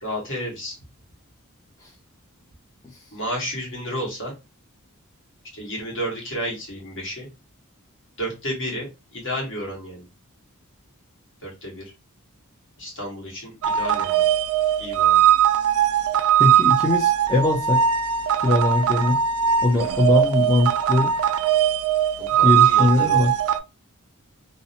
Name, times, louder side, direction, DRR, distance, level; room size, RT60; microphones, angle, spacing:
voice 1, 0.0-0.8 3.1-4.3 5.5-7.3 8.2-10.0 11.4-11.9 12.8-14.2 14.8-15.2 22.2-23.3, equal, 55° left, -2 dB, 1.3 m, -31 dB
sound 1, 13.6-23.6, right 9 dB, 70° right, 0.4 m, -20 dB
voice 2, 16.4-17.8 18.4-19.2 19.6-21.1 22.4-23.3, left 2 dB, 15° left, -4 dB, 0.4 m, -21 dB
2.7 x 2.0 x 2.6 m, 0.26 s
head